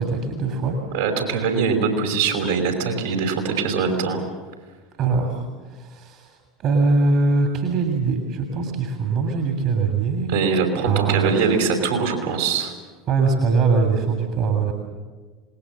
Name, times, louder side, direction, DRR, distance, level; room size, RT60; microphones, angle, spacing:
voice 1, 0.0-0.8 5.0-6.4 6.6-10.4 10.9-11.5 13.1-14.7, right 4 dB, 45° right, 4 dB, 3.2 m, -22 dB
voice 2, 0.9-4.2 10.3-12.7, right 5 dB, 65° right, 3 dB, 5.0 m, -22 dB
27.0 x 20.0 x 7.5 m, 1.4 s
figure-of-eight pair, 70°, 0 cm